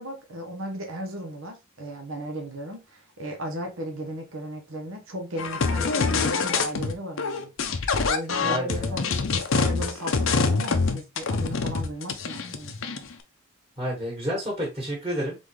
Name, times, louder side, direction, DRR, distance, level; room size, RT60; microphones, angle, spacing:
voice 1, 0.0-7.5 8.0-9.0 9.3-13.1, right 1 dB, 65° right, 1.1 m, -35 dB
sound 1, 5.4-6.9 7.2-13.1, left 4 dB, 65° left, 0.7 m, -25 dB
voice 2, 8.4-9.0 13.8-15.4, equal, 20° right, 1.8 m, -30 dB
3.9 x 3.6 x 3.3 m
head